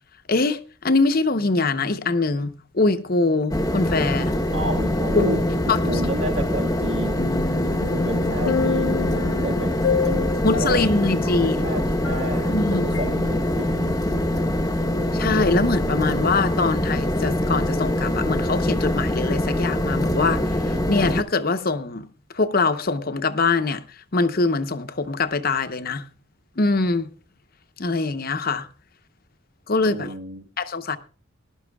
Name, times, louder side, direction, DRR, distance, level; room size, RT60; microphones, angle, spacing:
voice 1, 0.3-4.4 5.1-5.4 5.7-6.0 10.4-11.6 12.5-13.0 15.1-22.1 22.3-23.8 24.1-26.0 26.6-27.1 27.8-28.7 29.7-30.1 30.6-31.0, left 3 dB, 45° left, 0.9 m, -23 dB
sound 1, 3.5-21.2, left 1 dB, 15° left, 1.0 m, -24 dB
voice 2, 4.5-7.3 7.9-9.8 10.1-10.8 11.3-14.0 14.3-14.5 29.8-30.5, right 1 dB, 70° right, 1.7 m, -31 dB
sound 2, 7.2-12.6 12.9-13.1, left 5 dB, 75° left, 0.7 m, -28 dB
20.0 x 12.0 x 2.3 m
head